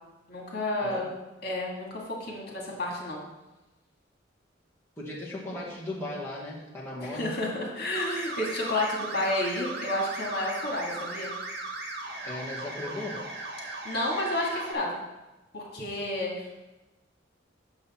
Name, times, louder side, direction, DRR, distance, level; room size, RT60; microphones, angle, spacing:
voice 1, 0.3-1.1 1.4-3.2 7.0-11.3 13.8-15.0 15.5-16.5, left 1 dB, 55° left, -2 dB, 2.0 m, -31 dB
voice 2, 5.0-7.3 12.2-13.3, left 1 dB, 15° left, -6 dB, 1.5 m, -37 dB
sound 1, 7.9-14.7, right 2 dB, 60° right, 1.5 m, -37 dB
8.0 x 6.9 x 4.4 m, 1.1 s
head